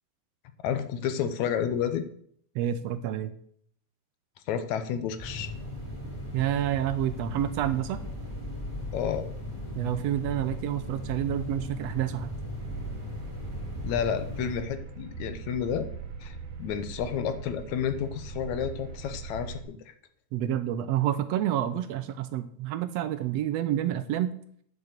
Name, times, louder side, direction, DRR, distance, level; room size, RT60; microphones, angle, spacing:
voice 1, 0.6-2.0 4.5-5.5 8.9-9.3 13.8-15.9 16.2-19.9, left 8 dB, 75° left, 10 dB, 2.2 m, -31 dB
voice 2, 2.5-3.3 6.3-8.0 9.8-12.3 20.3-24.3, right 11 dB, 75° right, 11 dB, 1.6 m, -28 dB
sound 1, 5.2-14.6, left 1 dB, 10° left, 3.9 m, -37 dB
sound 2, 12.6-19.6, right 5 dB, 55° right, 2.2 m, -41 dB
10.5 x 6.8 x 6.6 m, 0.63 s
omnidirectional pair, 3.4 m